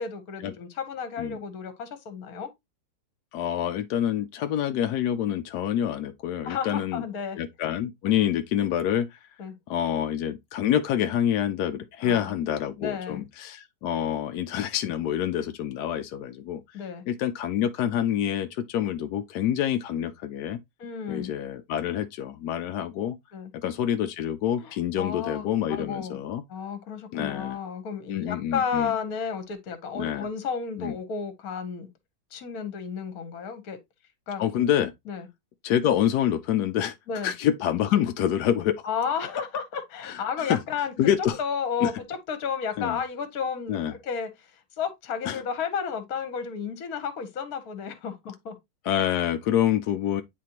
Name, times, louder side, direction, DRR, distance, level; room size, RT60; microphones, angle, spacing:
voice 1, 0.0-2.5 6.4-7.4 9.4-9.5 12.0-12.3 12.8-13.2 16.7-17.0 20.8-21.3 23.3-23.5 24.6-26.2 26.5-31.9 32.3-33.8 34.3-34.4 35.1-35.3 37.1-37.3 38.8-40.9 41.4-48.6, left 6 dB, 55° left, 1.5 m, -32 dB
voice 2, 3.3-7.1 7.4-9.2 9.7-16.8 17.1-20.6 21.1-23.2 23.6-26.4 27.1-27.6 28.1-28.9 29.9-30.3 30.8-30.9 34.4-34.9 35.6-37.0 37.2-38.8 40.0-40.2 40.5-40.6 41.0-41.4 41.8-41.9 42.8-43.0 43.7-43.9 45.2-45.4 48.8-50.2, left 10 dB, 70° left, 1.0 m, -27 dB
9.2 x 4.2 x 2.9 m
omnidirectional pair, 2.1 m